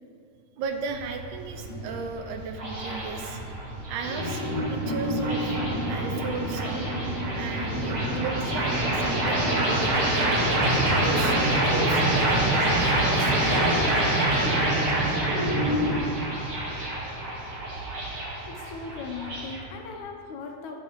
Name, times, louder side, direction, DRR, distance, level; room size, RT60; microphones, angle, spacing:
sound 1, 0.6-19.6, right 1 dB, 45° right, 1.7 m, -26 dB
voice 1, 0.6-6.9 7.3-10.5 11.0-13.4, right 5 dB, 80° right, 6 dB, 1.9 m, -36 dB
sound 2, 1.4-6.0 6.6-6.7 7.1-7.2 7.6-8.2 8.5-8.6 8.8-9.2 9.6-9.9 10.3-11.7 12.6-12.7 13.0-13.9 15.2-16.3, left 1 dB, 15° left, 0.9 m, -32 dB
voice 2, 18.5-20.8, left 4 dB, 75° left, 2 dB, 2.0 m, -38 dB
12.0 x 7.3 x 3.0 m, 2.2 s
omnidirectional pair, 3.7 m